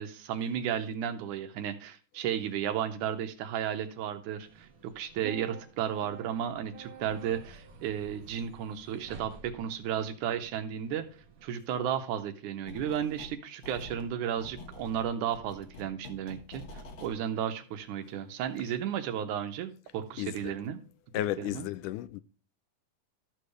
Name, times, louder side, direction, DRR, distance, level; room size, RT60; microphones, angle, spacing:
voice 1, 0.0-11.0 11.4-16.6 17.0-20.8 21.4-21.7, right 9 dB, 75° right, 2.2 m, -33 dB
sound 1, 4.4-11.5, right 6 dB, 60° right, 1.7 m, -50 dB
harsh clicks, 12.7-13.4 13.6-17.1, left 2 dB, 50° left, 1.7 m, -47 dB
voice 2, 21.1-22.2, left 14 dB, 80° left, 2.0 m, -33 dB
13.0 x 6.7 x 3.2 m
omnidirectional pair, 3.7 m